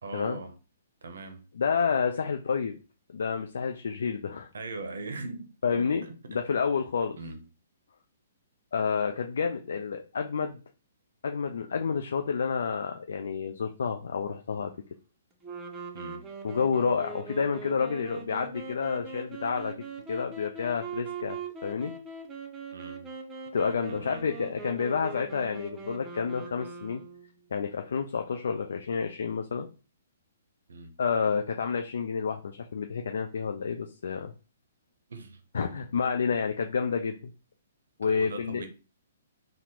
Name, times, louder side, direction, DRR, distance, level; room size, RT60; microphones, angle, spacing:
voice 1, 0.0-0.6 1.0-1.4 4.5-6.4 7.2-7.4 15.9-16.3 22.7-23.1 23.9-24.3 30.7-30.9 35.1-35.4 35.7-36.0 38.0-38.7, right 3 dB, 80° right, 0.6 m, -40 dB
voice 2, 1.6-2.8 3.1-4.5 5.6-6.0 6.3-7.2 8.7-10.6 11.2-14.7 16.4-19.7 20.1-21.9 23.5-27.0 27.5-29.7 31.0-34.3 35.5-37.3 38.0-38.6, left 6 dB, 75° left, 0.3 m, -29 dB
sound 1, 15.4-27.3, right 4 dB, 15° right, 0.5 m, -41 dB
3.5 x 2.0 x 2.9 m
hypercardioid pair, 135°, 0 cm